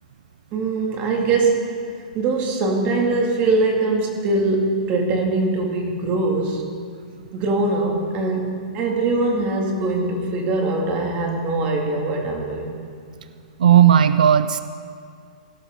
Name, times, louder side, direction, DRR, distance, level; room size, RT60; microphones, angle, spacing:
voice 1, 0.5-1.7 2.1-6.7 7.3-12.7, right 3 dB, 35° right, 1 dB, 2.1 m, -22 dB
voice 2, 13.6-14.6, right 9 dB, 90° right, 12 dB, 0.4 m, -14 dB
17.0 x 12.0 x 3.7 m, 2.3 s
hypercardioid pair, 145°, 4 cm